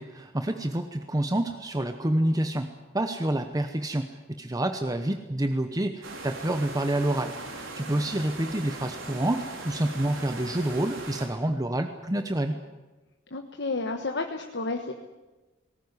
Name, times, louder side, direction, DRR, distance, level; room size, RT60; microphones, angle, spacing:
voice 1, 0.0-4.1 4.4-12.5, right 1 dB, 20° right, 7 dB, 0.9 m, -28 dB
sound 1, 6.0-11.3, right 2 dB, 85° right, 4.3 m, -40 dB
voice 2, 13.3-14.9, left 3 dB, 60° left, 4 dB, 1.3 m, -31 dB
19.0 x 18.0 x 9.7 m, 1.1 s
head